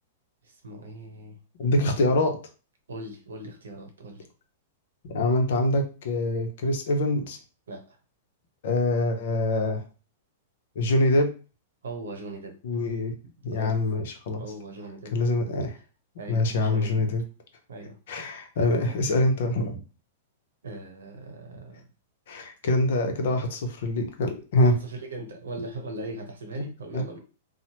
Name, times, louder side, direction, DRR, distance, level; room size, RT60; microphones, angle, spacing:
voice 1, 0.4-1.4 2.9-4.3 7.7-8.0 11.8-12.6 13.5-13.8 14.4-15.2 16.2-17.1 17.7-18.0 20.6-21.8 24.6-27.2, right 2 dB, 85° right, 4 dB, 0.8 m, -39 dB
voice 2, 1.6-2.4 5.1-7.4 8.6-9.8 10.8-11.3 12.6-13.1 13.4-14.4 15.1-15.7 16.3-17.2 18.1-19.8 22.3-24.7 26.9-27.0, left 2 dB, 65° left, 5 dB, 0.7 m, -24 dB
3.0 x 2.1 x 2.8 m, 0.35 s
hypercardioid pair, 120°, 0 cm